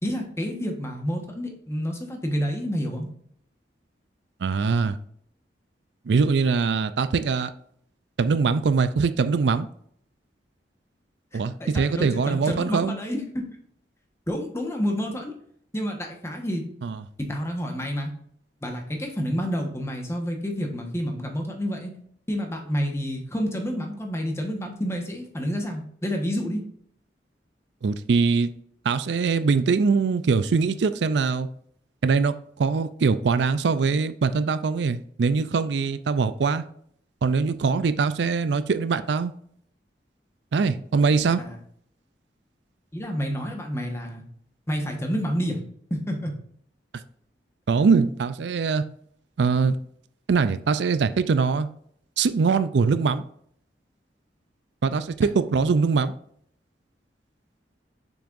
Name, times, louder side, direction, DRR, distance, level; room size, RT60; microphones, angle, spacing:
voice 1, 0.0-3.1 11.3-13.4 14.3-15.3 15.7-16.6 17.2-18.1 18.6-21.9 22.3-26.6 41.4-41.6 42.9-44.2 44.7-45.6 45.9-46.3, equal, 15° left, 2 dB, 1.3 m, -29 dB
voice 2, 4.4-5.0 6.1-7.5 8.2-9.7 11.3-12.9 16.8-17.0 27.8-28.5 28.8-31.5 32.0-36.6 37.2-39.3 40.5-41.4 47.7-48.8 49.4-49.8 50.3-51.7 52.2-53.2 54.8-56.1, right 5 dB, 75° right, 13 dB, 0.4 m, -22 dB
6.9 x 6.1 x 2.6 m, 0.64 s
head